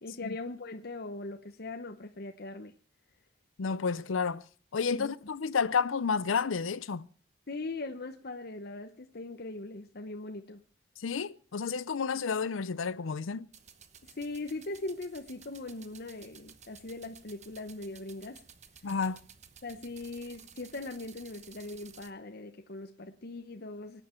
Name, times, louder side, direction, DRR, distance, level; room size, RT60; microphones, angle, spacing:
voice 1, 0.0-2.7 4.9-5.1 7.5-10.6 14.0-18.4 19.6-24.0, left 2 dB, 50° left, 0.9 m, -40 dB
voice 2, 3.6-4.4 4.7-7.1 11.0-13.5 18.8-19.3, left 5 dB, 85° left, 0.6 m, -31 dB
sound 1, 13.5-22.1, right 7 dB, 35° right, 1.0 m, -55 dB
24.5 x 9.1 x 4.4 m
head